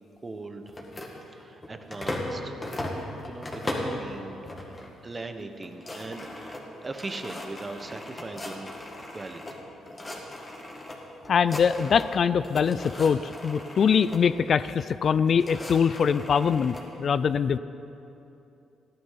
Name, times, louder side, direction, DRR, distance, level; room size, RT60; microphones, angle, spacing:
voice 1, 0.2-0.8 1.3-2.9 3.2-4.8 5.0-8.8 9.1-9.6, right 3 dB, 25° right, 7 dB, 1.1 m, -40 dB
sound 1, 0.7-2.3 2.6-4.0 4.5-4.9 5.2-5.3 5.6-9.5 9.9-10.9 11.2-12.2 12.4-14.2 15.0-16.8, left 1 dB, 25° left, 2.4 m, -37 dB
voice 2, 11.3-17.6, left 7 dB, 55° left, 14 dB, 0.3 m, -23 dB
15.5 x 11.5 x 5.8 m, 2.8 s
cardioid pair, 90°, 0 cm